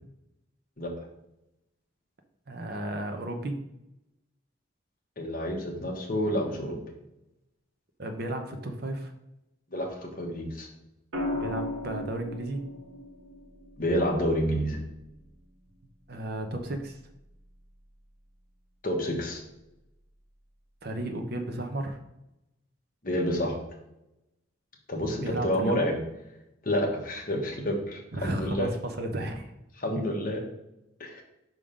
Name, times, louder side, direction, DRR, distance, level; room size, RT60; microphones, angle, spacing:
voice 1, 2.5-3.6 8.0-9.1 11.3-12.6 16.1-17.0 20.8-22.0 25.2-25.9 28.1-29.5, right 1 dB, 50° right, 5 dB, 0.7 m, -33 dB
voice 2, 5.2-6.8 9.7-10.7 13.8-14.8 18.8-19.4 23.0-23.5 24.9-26.0 26.6-28.7 29.8-30.4 31.0-31.2, equal, 45° left, 1 dB, 1.1 m, -29 dB
sound 1, 11.1-15.3 17.0-17.3, left 1 dB, 80° right, 1.3 m, -37 dB
5.6 x 3.7 x 5.0 m, 0.89 s
head